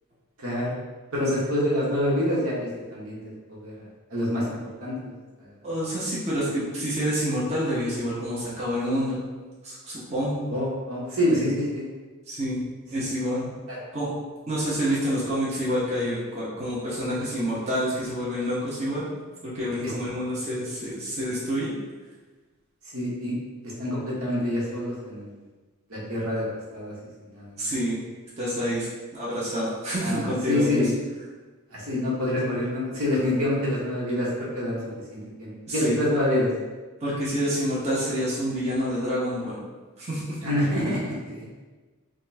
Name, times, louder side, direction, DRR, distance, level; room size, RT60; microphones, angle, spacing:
voice 1, 0.4-0.7 1.1-3.2 3.5-3.7 4.1-4.4 4.8-5.1 5.4-5.5 10.5-11.8 13.7-13.8 19.8-19.9 22.9-23.3 23.6-25.3 25.9-26.9 27.3-27.7 30.0-30.9 31.7-34.8 35.1-36.5 40.4-41.5, left 1 dB, 75° right, -6 dB, 1.2 m, -26 dB
voice 2, 5.6-9.2 9.6-10.5 12.3-12.6 12.9-13.5 13.9-14.1 14.5-19.1 19.4-21.7 27.6-28.0 28.4-30.9 35.7-36.0 37.0-39.6 40.0-40.4, equal, 30° right, -8 dB, 0.8 m, -28 dB
5.1 x 2.2 x 2.7 m, 1.3 s
head